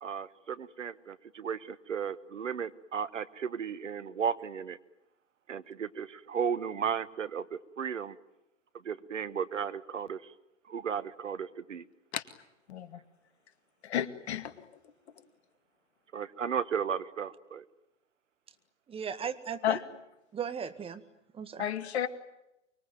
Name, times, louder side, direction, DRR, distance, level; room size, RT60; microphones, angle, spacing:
voice 1, 0.0-4.8 5.5-8.1 8.8-10.3 10.7-11.8 16.1-17.6, right 7 dB, 80° right, 16 dB, 1.2 m, -35 dB
voice 2, 12.7-13.0 13.8-14.7 19.6-19.9 21.6-22.1, left 10 dB, 60° left, 11 dB, 2.2 m, -32 dB
voice 3, 18.9-19.8 20.3-21.0 21.4-21.6, right 7 dB, 15° right, 11 dB, 1.8 m, -37 dB
24.5 x 23.5 x 9.2 m, 0.89 s
figure-of-eight pair, 115°, 37 cm